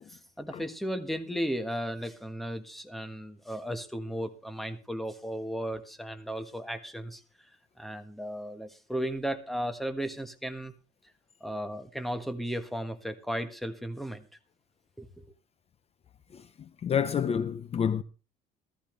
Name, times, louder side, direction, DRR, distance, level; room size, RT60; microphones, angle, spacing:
voice 1, 0.1-7.2 7.8-10.7 11.4-14.2 15.0-15.2, equal, ahead, 1.4 m, -35 dB
voice 2, 16.8-18.0, left 7 dB, 35° left, 0.6 m, -28 dB
14.5 x 14.0 x 3.3 m
cardioid pair, 110°, 17 cm